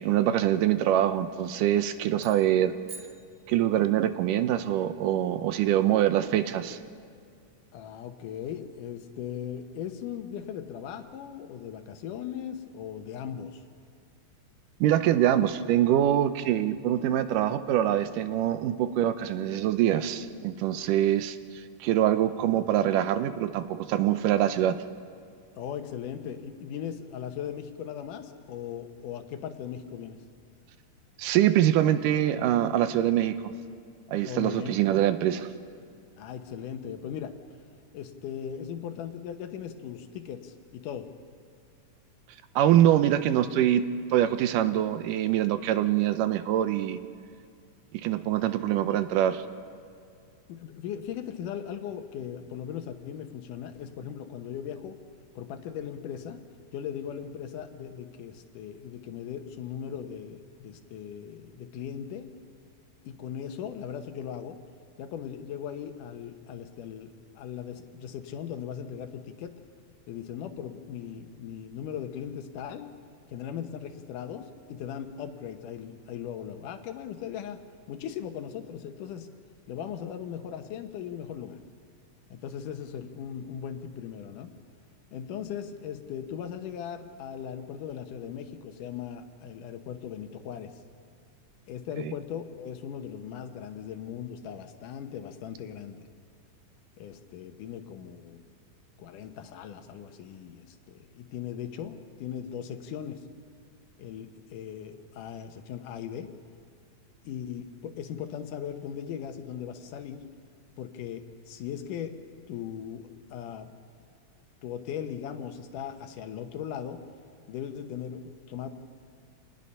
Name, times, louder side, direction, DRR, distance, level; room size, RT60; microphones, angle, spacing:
voice 1, 0.0-2.7 3.5-6.8 14.8-21.4 21.8-24.8 31.2-33.5 34.1-35.5 42.6-47.0 47.9-49.4 92.0-92.1, right 11 dB, 85° right, 11 dB, 2.4 m, -24 dB
sound 1, 2.2-4.1, right 4 dB, 55° right, 1.2 m, -48 dB
voice 2, 7.7-13.6 25.6-30.2 34.2-34.8 36.2-37.3 37.9-41.1 50.5-55.0 55.4-56.4 56.7-62.3 63.0-64.6 65.0-69.6 70.1-72.9 73.3-77.6 77.9-79.3 79.7-81.6 82.3-84.5 85.1-90.8 91.7-96.1 97.0-98.4 99.0-103.2 104.0-106.3 107.3-110.2 110.8-112.1 112.5-113.7 114.6-117.0 117.5-118.7, left 9 dB, 80° left, 7 dB, 2.6 m, -38 dB
27.5 x 19.5 x 5.6 m, 2.3 s
omnidirectional pair, 3.7 m